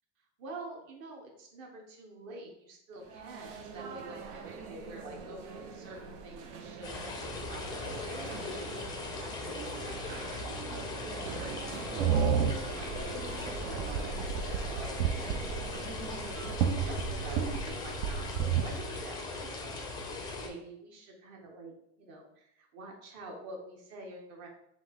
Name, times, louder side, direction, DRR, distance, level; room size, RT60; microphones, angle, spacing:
voice 1, 0.4-10.0 10.2-15.9 16.3-18.8 19.0-24.5, right 2 dB, 45° right, 1 dB, 1.1 m, -47 dB
sound 1, 2.9-16.6, right 5 dB, 85° right, 0.9 m, -44 dB
sound 2, 6.8-20.5, left 3 dB, 10° left, 0.4 m, -39 dB
sound 3, 12.0-18.8, right 7 dB, 65° right, 0.6 m, -32 dB
5.8 x 2.5 x 3.6 m, 0.76 s
supercardioid pair, 160°, 36 cm